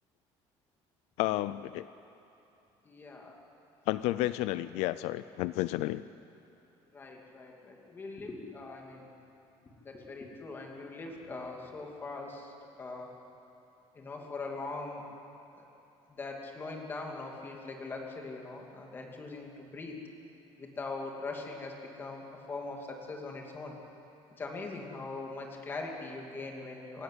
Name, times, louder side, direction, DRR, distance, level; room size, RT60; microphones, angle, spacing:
voice 1, 1.2-1.9 3.9-6.0, left 16 dB, 75° left, 15 dB, 0.5 m, -31 dB
voice 2, 2.8-3.4 6.9-9.1 9.8-12.5 12.8-13.1 13.9-15.0 15.5-15.6 16.1-20.0 20.6-23.8 24.4-27.0, left 3 dB, 20° left, 1 dB, 2.6 m, -41 dB
26.0 x 16.5 x 9.6 m, 2.8 s
cardioid pair, 180°, 11 cm